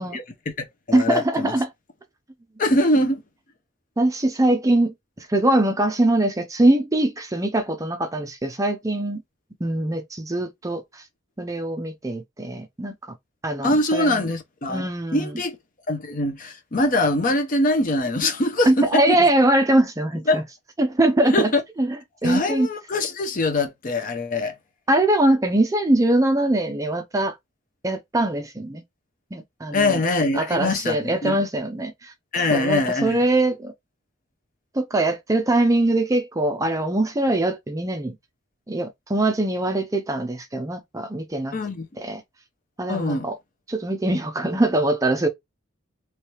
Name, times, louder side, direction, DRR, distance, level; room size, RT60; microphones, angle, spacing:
voice 1, 0.0-1.5 2.6-3.2 13.6-15.6 15.9-19.3 20.3-20.4 21.3-21.6 22.2-24.5 29.7-31.4 32.3-33.2 41.5-41.9 42.9-43.3, left 2 dB, 40° left, 0.7 m, -23 dB
voice 2, 0.9-1.7 4.0-9.2 9.6-11.0 11.4-12.9 13.4-14.2 14.7-15.3 18.7-20.4 20.8-21.5 21.8-22.0 22.2-22.7 24.9-27.4 27.8-28.8 29.3-30.0 30.3-32.1 32.5-33.7 34.7-38.2 38.7-41.5 42.0-42.2 42.8-43.4 43.7-45.3, right 1 dB, 15° right, 0.4 m, -22 dB
3.2 x 3.1 x 2.9 m
head